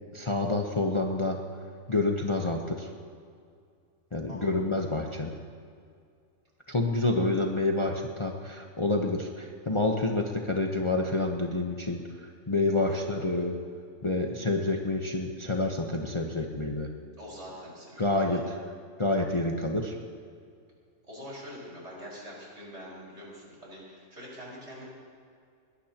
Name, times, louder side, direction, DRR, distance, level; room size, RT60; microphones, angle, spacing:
voice 1, 0.1-1.4 1.9-2.9 4.1-5.3 6.7-13.6 14.0-16.9 18.0-18.4 19.0-20.0, left 2 dB, 25° left, 1 dB, 0.9 m, -28 dB
voice 2, 12.8-13.5 17.2-18.4 21.0-24.9, equal, 60° right, -5 dB, 5.2 m, -44 dB
21.0 x 19.0 x 2.9 m, 2.3 s
omnidirectional pair, 1.4 m